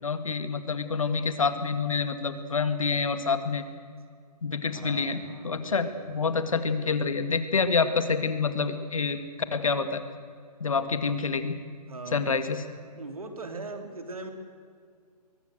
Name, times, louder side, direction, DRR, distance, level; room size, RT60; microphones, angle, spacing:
voice 1, 0.0-3.7 4.4-9.2 9.5-10.0 10.6-11.6 12.1-12.6, left 4 dB, 55° left, 10 dB, 2.0 m, -27 dB
voice 2, 4.7-6.3 11.9-12.4 12.9-14.3, right 3 dB, 60° right, 6 dB, 3.4 m, -40 dB
23.0 x 17.5 x 7.8 m, 2.1 s
hypercardioid pair, 175°, 21 cm